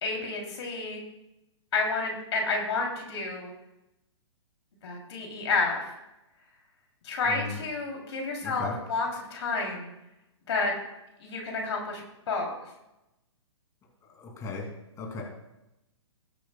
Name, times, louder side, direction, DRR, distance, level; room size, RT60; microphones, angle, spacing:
voice 1, 0.0-1.0 1.7-3.5 4.8-5.9 7.0-9.9 10.5-10.7 11.2-12.0 12.3-12.5, left 3 dB, 65° left, 1 dB, 3.1 m, -30 dB
voice 2, 7.3-7.6 8.4-8.7 14.0-14.7 15.0-15.2, left 4 dB, 20° left, -1 dB, 2.7 m, -36 dB
19.5 x 8.4 x 2.3 m, 0.92 s
hypercardioid pair, 130°, 15 cm